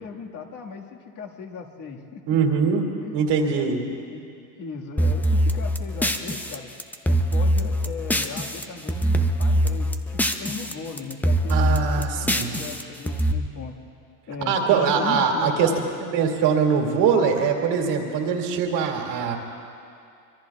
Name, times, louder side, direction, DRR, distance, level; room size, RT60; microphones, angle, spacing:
voice 1, 0.0-2.2 3.0-6.7 7.0-13.7 14.3-15.9, left 4 dB, 35° left, 0 dB, 1.9 m, -37 dB
voice 2, 2.3-2.9 3.1-3.8 11.5-12.5 14.4-15.7 16.0-19.4, right 6 dB, 55° right, 2 dB, 2.6 m, -22 dB
sound 1, 5.0-8.6 8.9-10.7 11.0-13.3, equal, 5° left, 0.6 m, -23 dB
25.5 x 23.0 x 2.4 m, 2.5 s
supercardioid pair, 105°, 49 cm